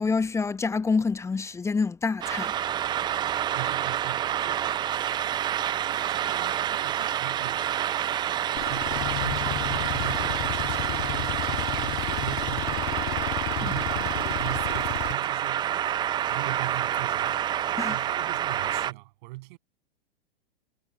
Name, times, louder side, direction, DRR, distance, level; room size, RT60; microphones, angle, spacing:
voice 1, 0.0-2.5 17.8-18.0, left 4 dB, 10° left, 0.8 m, -27 dB
sound 1, 2.2-18.9, right 11 dB, 15° right, 0.4 m, -28 dB
voice 2, 3.5-4.7 5.8-7.7 8.5-15.8 16.3-17.6 17.8-19.6, right 21 dB, 50° right, 7.8 m, -40 dB
sound 2, 8.6-15.1, left 30 dB, 40° left, 1.8 m, -33 dB
hypercardioid pair, 105°, 31 cm